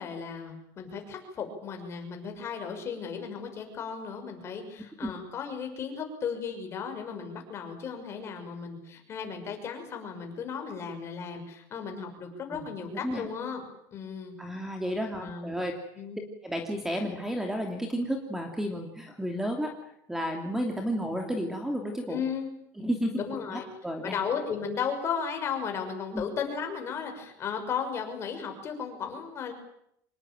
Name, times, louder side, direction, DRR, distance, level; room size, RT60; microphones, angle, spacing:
voice 1, 0.0-13.7 13.9-14.3 15.2-15.6 16.0-16.2 22.1-22.5 23.3-23.7 24.0-29.5, left 6 dB, 30° left, 4 dB, 6.3 m, -35 dB
voice 2, 12.5-13.2 14.4-15.7 16.4-19.7 20.1-22.2 22.8-24.2 26.1-26.2, equal, 5° right, 4 dB, 2.8 m, -32 dB
26.5 x 20.5 x 9.1 m, 0.74 s
cardioid pair, 160°, 9 cm